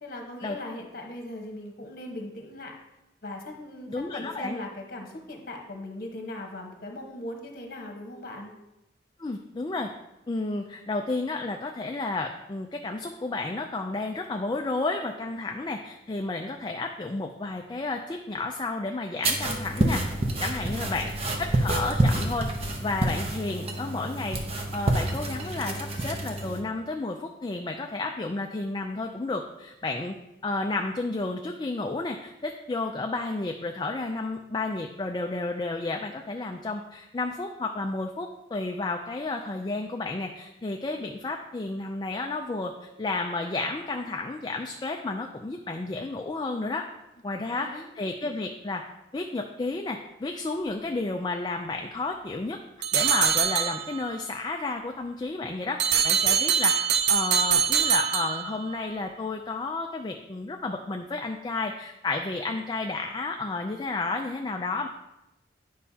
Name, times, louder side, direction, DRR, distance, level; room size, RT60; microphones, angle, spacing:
voice 1, 0.0-2.7 3.2-8.5 20.6-20.9 47.5-47.8, left 1 dB, 50° left, 2 dB, 1.2 m, -39 dB
voice 2, 3.9-4.6 9.2-9.9 10.3-20.0 20.4-21.1 21.4-22.5 22.8-24.4 24.7-30.1 30.4-46.9 47.2-48.8 49.1-52.6 52.9-64.9, left 3 dB, 25° left, 3 dB, 0.3 m, -32 dB
sound 1, 19.2-26.6, right 1 dB, 30° right, 0.8 m, -28 dB
sound 2, 52.8-54.2 55.8-58.8, right 8 dB, 60° right, 0.5 m, -24 dB
10.5 x 5.5 x 2.8 m, 0.95 s
head